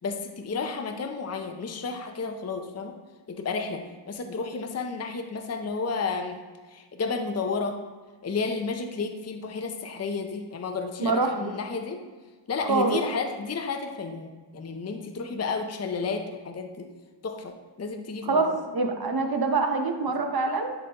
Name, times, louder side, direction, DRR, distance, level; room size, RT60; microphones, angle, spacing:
voice 1, 0.0-2.9 3.3-6.4 6.7-7.8 8.2-12.0 12.5-16.9 17.2-18.5 20.1-20.2, left 4 dB, 35° left, 5 dB, 0.5 m, -32 dB
voice 2, 11.0-11.3 12.6-13.0 18.3-20.7, right 3 dB, 50° right, 4 dB, 0.8 m, -25 dB
10.0 x 3.9 x 2.9 m, 1.3 s
wide cardioid pair, 85°, 46 cm